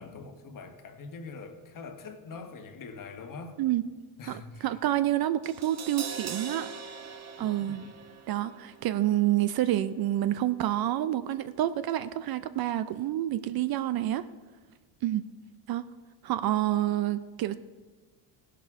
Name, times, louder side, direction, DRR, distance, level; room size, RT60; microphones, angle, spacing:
voice 1, 0.0-3.6 4.2-4.8 7.8-7.9, left 4 dB, 40° left, 1.3 m, -43 dB
voice 2, 4.3-6.7 7.4-7.8 8.3-14.3 15.0-15.2 15.7-15.9 16.2-17.5, right 13 dB, 50° right, 0.5 m, -28 dB
Crash cymbal, 5.4-11.6 11.9-12.0, right 6 dB, 30° right, 1.2 m, -43 dB
17.0 x 11.0 x 3.6 m
cardioid pair, 125°, 49 cm